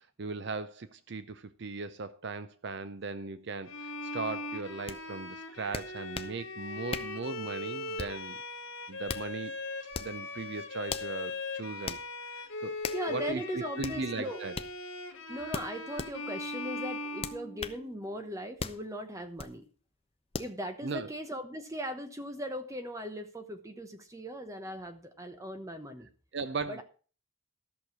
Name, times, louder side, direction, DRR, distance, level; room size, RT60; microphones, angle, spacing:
voice 1, 0.0-8.4 8.9-9.5 10.0-12.0 12.3-13.4 13.8-14.6 20.8-21.1 26.3-26.8, right 4 dB, 55° right, 0.5 m, -38 dB
Bowed string instrument, 3.7-18.0, left 2 dB, 65° left, 2.1 m, -40 dB
sound 1, 4.9-5.0 5.7-6.4 6.9-7.2 8.0-8.3 8.9-9.3 9.9-10.2 10.9-11.1 11.9-12.1 12.8-13.1 13.8-14.0 14.5-14.7 15.5-16.1 17.2-17.8 18.6-18.8 19.4-19.6 20.3-20.5, left 4 dB, 25° left, 0.6 m, -38 dB
voice 2, 12.9-14.4 15.3-19.6 20.4-26.1 26.7-26.8, equal, 15° right, 1.0 m, -39 dB
13.5 x 6.5 x 6.1 m
head